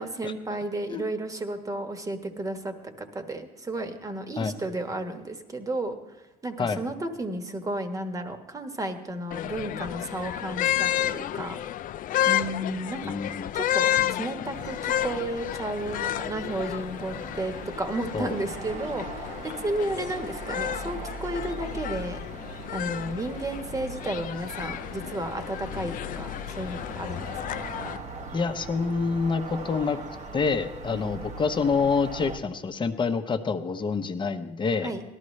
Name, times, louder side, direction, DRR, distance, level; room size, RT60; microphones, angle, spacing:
voice 1, 0.0-11.6 12.3-13.0 13.5-22.2 22.7-27.6 30.9-31.1 34.8-35.0, right 1 dB, 20° right, 7 dB, 1.3 m, -33 dB
sound 1, 9.3-28.0, left 12 dB, 55° left, 0.4 m, -31 dB
voice 2, 13.0-13.5 18.1-18.4 28.3-30.0 30.3-34.9, left 5 dB, 30° left, 7 dB, 0.8 m, -27 dB
sound 2, 14.5-32.4, right 3 dB, 45° right, 1.0 m, -41 dB
18.0 x 12.5 x 3.2 m, 1.2 s
cardioid pair, 110°, 17 cm